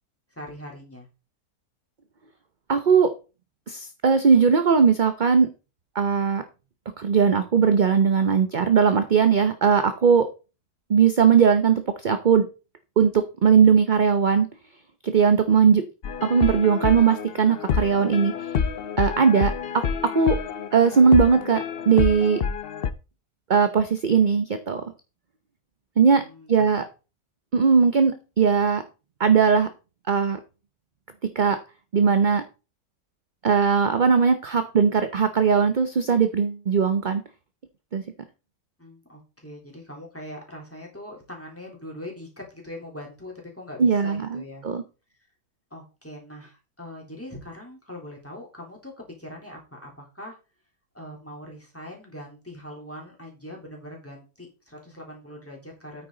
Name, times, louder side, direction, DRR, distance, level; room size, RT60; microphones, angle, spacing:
voice 1, 0.3-1.1 26.2-26.7 38.8-44.7 45.7-50.4 50.9-56.1, left 1 dB, 10° left, -1 dB, 3.3 m, -41 dB
voice 2, 2.7-3.1 3.7-5.5 5.9-6.4 7.0-10.3 10.9-12.5 13.0-14.5 15.0-15.8 16.2-18.5 19.0-19.8 20.1-20.4 20.7-21.6 21.9-22.4 23.5-24.8 26.0-26.2 26.5-26.8 27.5-28.8 29.2-29.7 30.1-30.4 31.3-31.6 31.9-32.4 33.4-37.2 37.9-38.0 43.8-44.8, right 6 dB, 40° right, 9 dB, 0.7 m, -19 dB
sound 1, 16.0-22.9, left 7 dB, 55° left, 0.6 m, -28 dB
9.2 x 8.6 x 3.9 m, 0.32 s
omnidirectional pair, 1.7 m